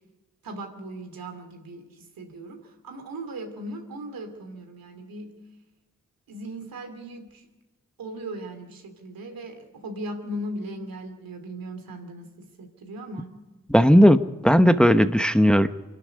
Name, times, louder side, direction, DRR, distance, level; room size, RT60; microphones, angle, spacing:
voice 1, 0.4-5.3 6.3-7.5 8.0-13.3, right 1 dB, 90° right, 5 dB, 2.8 m, -38 dB
voice 2, 13.7-15.7, equal, 5° left, 10 dB, 1.0 m, -16 dB
25.0 x 12.0 x 9.7 m, 1.2 s
cardioid pair, 45°, 34 cm